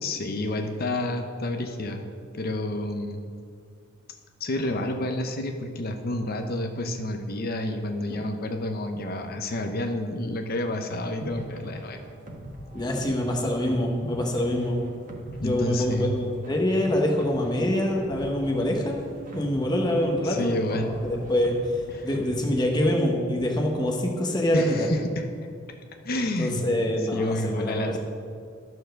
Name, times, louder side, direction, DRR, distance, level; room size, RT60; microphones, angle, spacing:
voice 1, 0.0-2.0 2.3-3.2 4.4-12.0 15.4-16.2 20.2-20.9 21.9-22.1 24.5-25.3 26.0-26.6 27.1-28.0, left 1 dB, 50° left, 5 dB, 0.7 m, -29 dB
sound 1, 11.2-22.5, equal, 40° right, 1.4 m, -41 dB
voice 2, 12.7-14.8 15.4-19.0 19.3-21.5 22.0-24.9 26.4-28.0, left 1 dB, 20° left, 0 dB, 1.1 m, -25 dB
12.0 x 4.6 x 6.4 m, 2.2 s
head